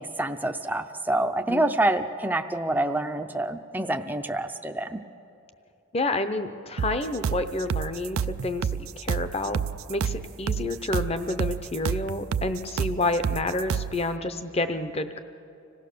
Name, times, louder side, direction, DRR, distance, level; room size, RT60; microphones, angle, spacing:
voice 1, 0.0-5.0, right 1 dB, 10° right, 6 dB, 0.6 m, -27 dB
voice 2, 5.9-9.6 9.9-15.2, left 2 dB, 30° left, 10 dB, 0.8 m, -29 dB
sound 1, 6.8-14.0, right 7 dB, 75° right, 0.4 m, -29 dB
26.0 x 17.0 x 6.7 m, 2.8 s
head